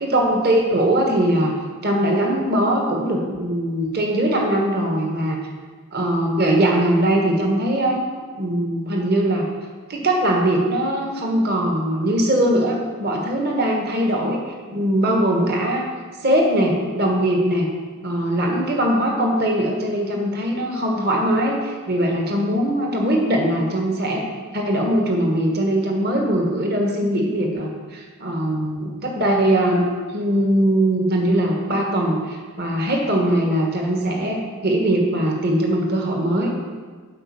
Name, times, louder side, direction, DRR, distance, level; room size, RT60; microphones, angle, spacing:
voice 1, 0.0-1.5 1.8-5.4 5.9-8.0 8.4-9.4 9.9-14.4 14.7-15.8 16.2-17.7 18.0-24.2 24.5-36.5, right 1 dB, 45° right, 1 dB, 1.5 m, -21 dB
8.4 x 5.3 x 7.2 m, 1.5 s
head